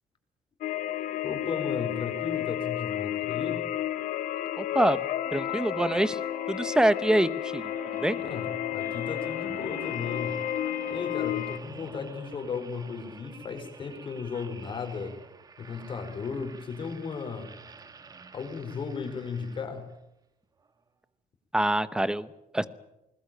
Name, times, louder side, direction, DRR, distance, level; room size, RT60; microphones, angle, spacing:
sound 1, 0.6-11.6, left 12 dB, 70° left, 1.8 m, -32 dB
voice 1, 1.2-3.6 8.2-10.5 10.9-15.2 15.6-17.5 18.3-19.9, left 5 dB, 35° left, 6 dB, 4.6 m, -35 dB
voice 2, 4.6-6.2 6.5-7.7 8.0-8.2 21.5-22.3 22.5-22.7, right 1 dB, 5° right, 15 dB, 0.9 m, -25 dB
Wind instrument woodwind instrument, 5.2-11.4, right 12 dB, 80° right, 1.9 m, -49 dB
sound 2, 6.5-20.0 20.6-20.8, right 5 dB, 25° right, 1.5 m, -50 dB
20.5 x 20.5 x 9.0 m, 0.88 s
cardioid pair, 155°, 14 cm